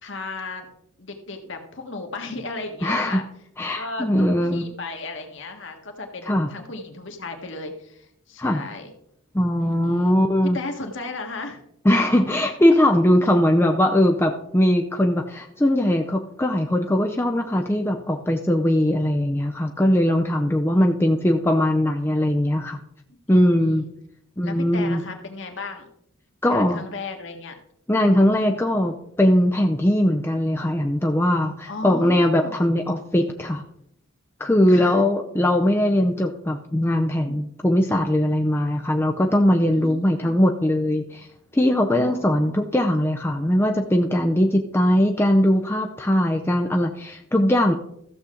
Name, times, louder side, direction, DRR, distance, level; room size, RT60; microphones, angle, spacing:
voice 1, 0.0-0.7 1.0-3.2 3.7-8.9 9.6-10.1 10.4-11.6 13.2-13.3 23.1-23.9 24.4-25.9 26.4-27.6 31.7-32.6 34.7-35.0 39.7-40.4 41.9-42.5, left 3 dB, 60° left, 4 dB, 1.6 m, -35 dB
voice 2, 2.8-3.2 3.6-4.7 6.3-6.5 8.4-8.6 9.3-10.6 11.8-22.8 23.3-23.8 24.4-25.0 26.4-26.8 27.9-33.6 34.4-41.3 41.5-47.7, left 1 dB, 10° left, 3 dB, 0.5 m, -20 dB
14.5 x 7.1 x 3.8 m, 0.74 s
head